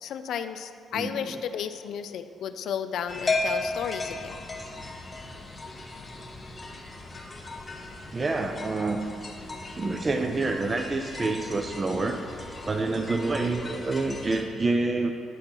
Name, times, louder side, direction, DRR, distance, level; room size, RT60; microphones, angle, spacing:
voice 1, 0.0-4.4, left 8 dB, 75° left, 10 dB, 0.4 m, -33 dB
sound 1, 3.1-14.4, left 2 dB, 20° left, 0.9 m, -36 dB
voice 2, 8.1-9.0 9.7-12.2 12.6-15.1, right 3 dB, 30° right, 5 dB, 0.4 m, -27 dB
9.9 x 3.6 x 5.8 m, 2.5 s
cardioid pair, 90°, 0 cm